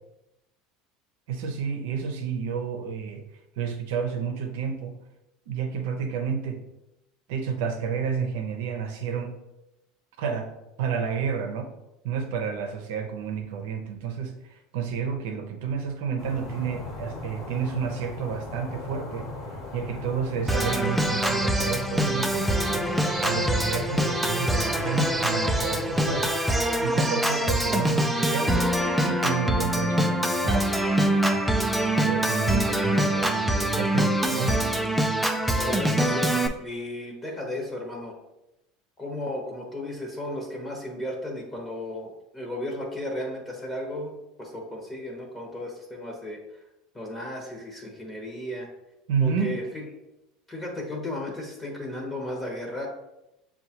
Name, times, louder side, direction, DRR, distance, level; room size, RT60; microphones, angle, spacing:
voice 1, 1.3-3.2 3.6-4.9 5.5-6.7 7.3-9.4 10.2-10.5 10.8-11.7 12.0-19.3 19.7-22.8 23.2-26.4 26.8-31.4 32.0-34.6 49.1-49.6, right 6 dB, 75° right, 5 dB, 0.6 m, -30 dB
City skyline night wind - - Stereo Out, 16.2-26.4, left 2 dB, 45° left, 1.2 m, -38 dB
Organ, 20.5-36.5, right 1 dB, 5° right, 0.5 m, -24 dB
voice 2, 35.5-36.3 36.6-38.2 39.0-46.6 46.9-48.7 49.2-49.8 50.5-52.9, left 1 dB, 15° left, -1 dB, 1.0 m, -34 dB
6.6 x 2.3 x 2.9 m, 0.92 s
hypercardioid pair, 90°, 0 cm